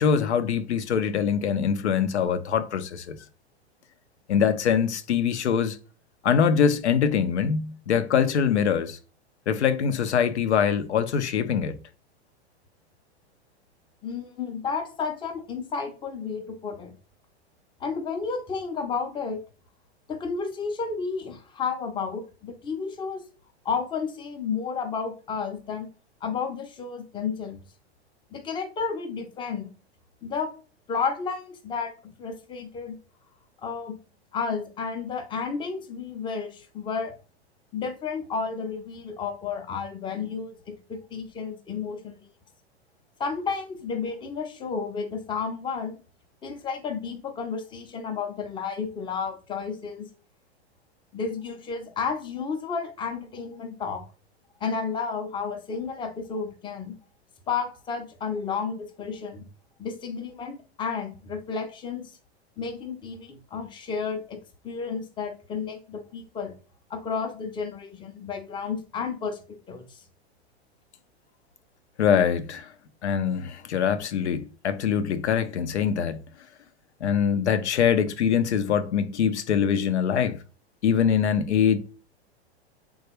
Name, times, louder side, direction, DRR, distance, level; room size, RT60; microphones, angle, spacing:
voice 1, 0.0-3.2 4.3-5.8 6.2-9.0 9.5-11.8 72.0-72.7 73.0-76.2 77.0-80.4 80.8-81.8, left 7 dB, 85° left, 0.5 m, -23 dB
voice 2, 14.0-16.9 17.8-19.4 20.1-23.2 23.6-25.9 26.2-27.6 28.3-29.7 30.2-30.5 30.9-33.0 33.6-34.0 34.3-37.1 37.7-42.2 43.2-46.0 46.4-50.1 51.1-54.0 54.6-57.0 57.5-59.5 59.8-62.1 62.6-64.4 64.6-66.5 66.9-70.0, left 5 dB, 15° left, 0.5 m, -32 dB
3.4 x 2.3 x 2.9 m
hypercardioid pair, 105°, 33 cm